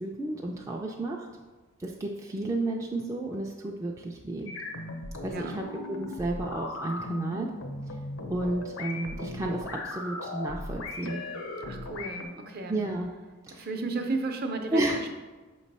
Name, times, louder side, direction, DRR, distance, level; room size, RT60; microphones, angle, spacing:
voice 1, 0.0-1.3 1.8-4.5 5.2-7.5 8.3-11.2 12.7-13.1 13.5-13.7 14.7-15.0, right 1 dB, 15° right, -1 dB, 0.3 m, -32 dB
sound 1, 4.5-12.2, left 2 dB, 75° left, 0.7 m, -38 dB
voice 2, 5.2-5.6 11.6-12.8 13.5-15.1, right 3 dB, 50° right, 4 dB, 0.6 m, -34 dB
6.0 x 3.1 x 5.3 m, 1.3 s
head